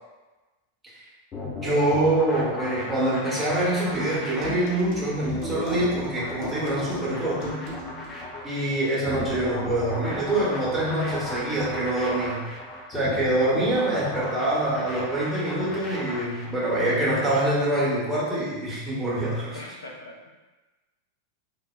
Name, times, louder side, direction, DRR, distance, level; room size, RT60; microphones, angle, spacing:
sound 1, 1.3-16.7, left 2 dB, 25° left, 0.5 m, -35 dB
voice 1, 1.6-7.6 8.4-12.5 12.9-19.6, right 1 dB, 10° right, -9 dB, 0.9 m, -25 dB
sound 2, 3.9-8.2, right 1 dB, 45° right, 0.9 m, -37 dB
voice 2, 19.5-20.3, left 1 dB, 75° left, -2 dB, 0.5 m, -41 dB
3.0 x 2.1 x 2.2 m, 1.2 s
figure-of-eight pair, 90°, 0 cm